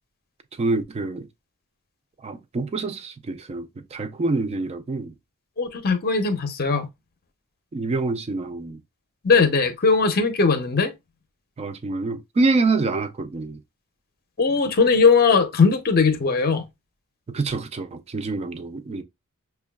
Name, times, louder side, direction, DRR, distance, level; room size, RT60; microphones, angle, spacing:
voice 1, 0.6-1.3 2.2-5.1 7.7-8.8 11.6-13.6 17.3-19.0, right 3 dB, 30° right, 0.4 m, -26 dB
voice 2, 5.6-6.9 9.2-10.9 14.4-16.7, left 4 dB, 45° left, 0.6 m, -19 dB
5.9 x 2.2 x 2.2 m
head